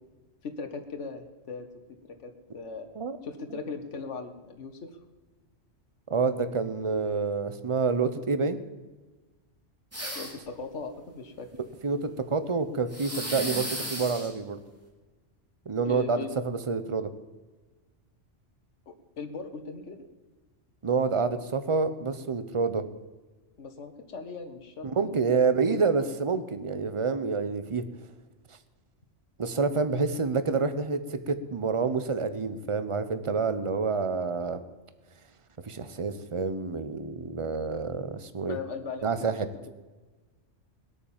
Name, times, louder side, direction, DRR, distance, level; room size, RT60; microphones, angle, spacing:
voice 1, 0.4-2.9 3.2-5.0 10.1-11.5 15.8-16.4 18.9-20.0 23.6-25.3 38.5-39.3, left 4 dB, 75° left, 6 dB, 1.6 m, -39 dB
voice 2, 6.1-8.6 11.8-14.6 15.7-17.1 20.8-22.8 24.8-27.8 29.4-34.6 35.6-38.6 39.0-39.5, right 4 dB, 30° right, 11 dB, 0.9 m, -28 dB
sound 1, 9.9-10.5 12.9-14.3, equal, 10° right, 3.7 m, -34 dB
20.0 x 8.6 x 7.4 m, 1.2 s
omnidirectional pair, 1.2 m